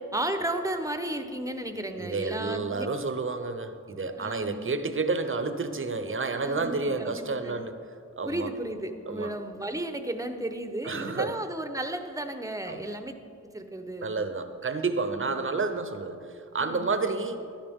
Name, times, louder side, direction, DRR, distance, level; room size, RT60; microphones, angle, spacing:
voice 1, 0.1-2.9 4.2-4.7 6.3-7.6 8.2-13.1 13.4-14.1 15.2-15.5 16.6-17.1, right 1 dB, 10° right, 7 dB, 0.9 m, -34 dB
voice 2, 2.0-7.8 8.2-8.5 9.1-9.3 10.8-11.3 12.7-12.8 14.0-17.4, right 3 dB, 45° right, 9 dB, 0.8 m, -30 dB
12.5 x 11.5 x 3.6 m, 2.4 s
wide cardioid pair, 65°, 29 cm